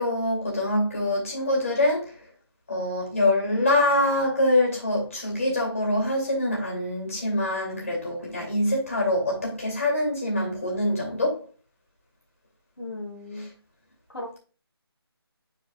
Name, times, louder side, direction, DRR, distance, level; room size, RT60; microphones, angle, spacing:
voice 1, 0.0-2.1 2.7-11.4, left 1 dB, 35° left, 2.5 m, -24 dB
voice 2, 12.8-13.5 14.1-14.4, left 2 dB, 75° left, 2.0 m, -36 dB
10.0 x 4.4 x 2.3 m
figure-of-eight pair, 180°, 14 cm